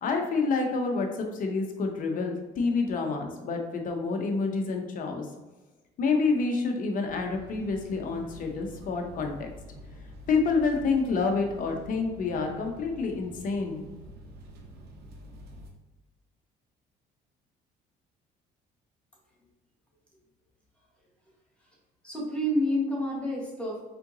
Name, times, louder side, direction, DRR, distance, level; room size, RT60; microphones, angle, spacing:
voice 1, 0.0-5.3 6.0-9.5 10.3-13.8, left 4 dB, 55° left, 3 dB, 0.8 m, -28 dB
sound 1, 7.0-15.7, equal, 75° right, 0.8 m, -47 dB
voice 2, 22.0-23.8, equal, 5° left, -5 dB, 1.3 m, -28 dB
4.3 x 3.7 x 2.7 m, 1.1 s
cardioid pair, 110°, 17 cm